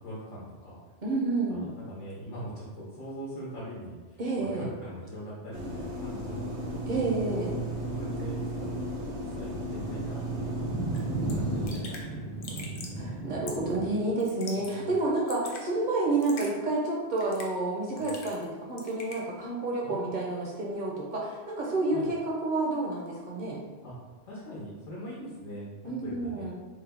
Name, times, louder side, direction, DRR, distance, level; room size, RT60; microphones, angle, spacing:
voice 1, 0.0-0.8 1.5-6.8 7.5-8.8 9.2-10.6 10.9-13.2 14.5-14.9 18.0-18.1 19.8-20.2 21.9-22.1 23.8-23.9 24.2-26.5, equal, 85° left, -7 dB, 1.1 m, -42 dB
voice 2, 1.0-1.7 4.2-4.6 6.9-7.5 13.0-23.6 25.8-26.5, right 2 dB, 55° right, -3 dB, 0.6 m, -29 dB
sound 1, 5.5-11.7, right 1 dB, 75° right, 0.9 m, -34 dB
sound 2, 6.7-14.0, right 2 dB, 10° left, 0.4 m, -37 dB
Raindrop / Drip, 10.9-11.0 11.3-11.4 11.7-12.1 12.4-13.0 13.5-13.8 14.2-14.8 15.0-15.6 16.2-16.5 17.2-17.6 18.0-18.5 18.8-19.2, left 3 dB, 60° left, 0.6 m, -42 dB
3.3 x 2.1 x 3.4 m, 1.3 s
omnidirectional pair, 1.2 m